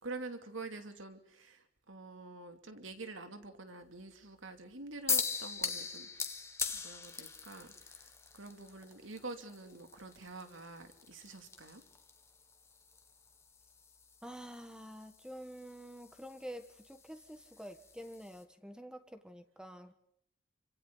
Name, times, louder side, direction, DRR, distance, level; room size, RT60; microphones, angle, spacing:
voice 1, 0.0-6.3 6.7-11.8, right 3 dB, 85° right, 7 dB, 2.8 m, -47 dB
sound 1, 5.1-18.4, left 5 dB, 15° left, 1.7 m, -42 dB
voice 2, 14.2-19.9, equal, 5° right, 8 dB, 1.4 m, -48 dB
29.5 x 26.0 x 4.0 m, 0.70 s
head